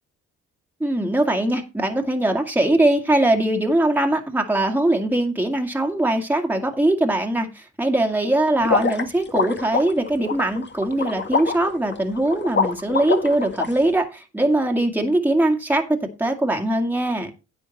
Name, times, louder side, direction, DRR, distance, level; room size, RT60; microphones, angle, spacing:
voice 1, 0.8-17.3, right 1 dB, 5° right, 2.1 m, -21 dB
sound 1, 8.6-13.7, left 5 dB, 35° left, 1.9 m, -25 dB
10.5 x 8.0 x 4.2 m
supercardioid pair, 60°, 30 cm